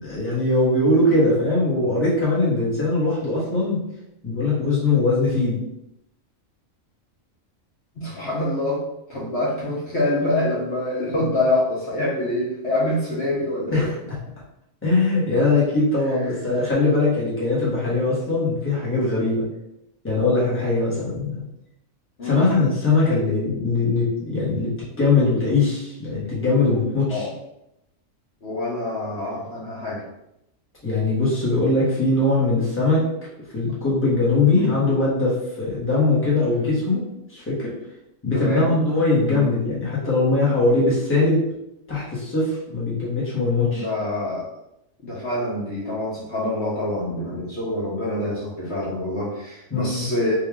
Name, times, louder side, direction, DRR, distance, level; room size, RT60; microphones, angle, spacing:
voice 1, 0.0-3.8 4.2-5.6 11.2-11.3 13.7-14.0 14.8-19.4 20.0-21.4 22.2-27.3 30.8-33.1 33.5-37.0 37.3-37.7 38.2-41.4 41.9-43.9 49.7-50.1, left 2 dB, 10° left, -7 dB, 1.1 m, -21 dB
voice 2, 8.0-8.8 9.1-13.8 22.2-22.5 27.1-27.3 28.4-30.0 34.5-34.8 38.3-38.8 39.2-39.5 43.6-44.5 45.0-50.3, left 1 dB, 55° left, -6 dB, 1.1 m, -26 dB
3.3 x 2.5 x 3.5 m, 0.82 s
omnidirectional pair, 1.4 m